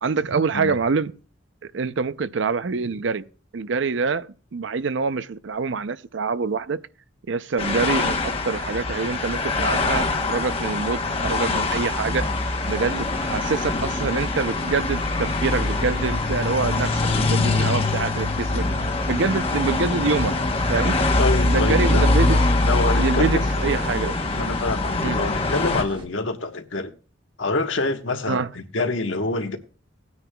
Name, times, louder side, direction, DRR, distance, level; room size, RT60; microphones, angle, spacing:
voice 1, 0.0-1.1 1.6-3.2 3.5-6.8 7.3-12.3 12.6-18.7 19.1-20.3 20.7-21.0 21.5-22.4 22.7-24.2 25.0-25.2 28.3-28.5, right 4 dB, 70° right, 0.5 m, -25 dB
sound 1, 7.6-25.8, left 2 dB, 30° left, 1.0 m, -23 dB
sound 2, 12.0-26.1, right 1 dB, 25° right, 1.3 m, -42 dB
voice 2, 20.8-22.1 22.6-23.5 24.4-26.9 27.4-29.6, left 3 dB, 80° left, 1.3 m, -26 dB
18.0 x 9.5 x 2.3 m
head